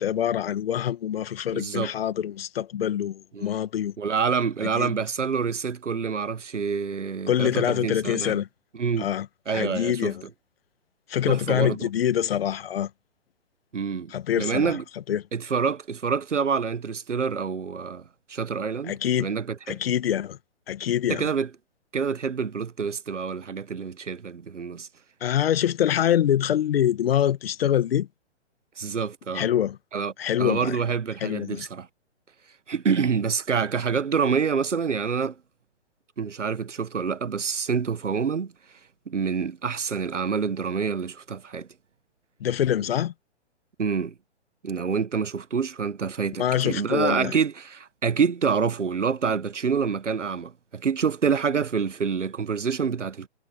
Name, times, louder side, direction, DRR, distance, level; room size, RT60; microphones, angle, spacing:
voice 1, 0.0-3.9 4.6-4.9 7.3-8.5 9.0-10.2 11.1-12.9 14.1-14.7 15.1-15.2 18.9-19.3 19.7-20.4 20.7-21.3 25.2-28.1 29.3-29.8 30.2-30.8 31.2-31.7 42.4-43.1 46.4-47.3, left 10 dB, 55° left, 1.6 m, -25 dB
voice 2, 1.5-1.9 3.3-3.5 4.0-8.4 8.7-9.1 9.5-10.1 11.3-11.9 13.7-14.8 15.3-18.0 18.3-19.8 21.1-21.5 21.9-24.9 28.8-29.5 29.9-30.1 30.4-31.9 32.7-35.4 36.2-38.5 39.1-41.7 43.8-44.1 44.6-53.3, right 6 dB, 85° right, 1.5 m, -27 dB
hypercardioid pair, 135°, 35 cm